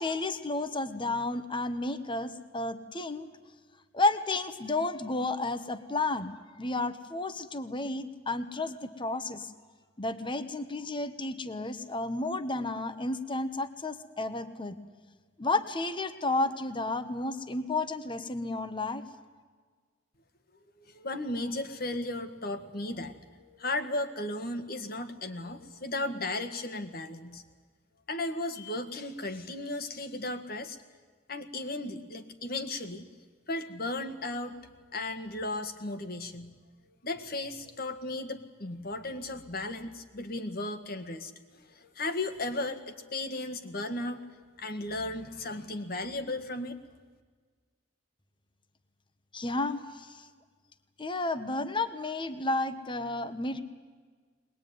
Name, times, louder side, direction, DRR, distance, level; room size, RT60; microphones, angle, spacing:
voice 1, 0.0-3.3 3.9-6.3 6.6-9.5 10.0-14.8 15.4-19.0 49.3-50.1 51.0-53.6, left 2 dB, 25° left, 10 dB, 1.1 m, -32 dB
voice 2, 20.8-27.4 28.1-30.8 31.3-33.1 33.5-36.5 37.0-44.2 44.6-46.8, left 2 dB, 55° left, 9 dB, 1.8 m, -35 dB
22.0 x 20.5 x 9.4 m, 1.5 s
head